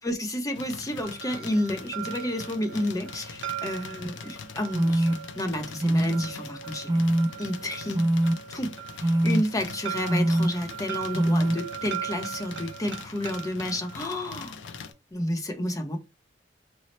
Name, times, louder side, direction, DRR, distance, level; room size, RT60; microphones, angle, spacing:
voice 1, 0.0-7.0 7.4-8.1 8.5-14.5 15.1-16.0, left 1 dB, 20° left, 0.6 m, -31 dB
sound 1, 0.5-14.9, left 6 dB, 85° left, 0.4 m, -43 dB
sound 2, 1.0-14.9, right 10 dB, 70° right, 0.7 m, -40 dB
Iphone Vibrating, 4.0-4.1 4.7-5.1 5.8-6.2 6.9-7.3 7.9-8.3 9.0-9.4 10.1-10.5 11.1-11.5, right 1 dB, 20° right, 0.3 m, -22 dB
3.1 x 2.0 x 3.9 m
head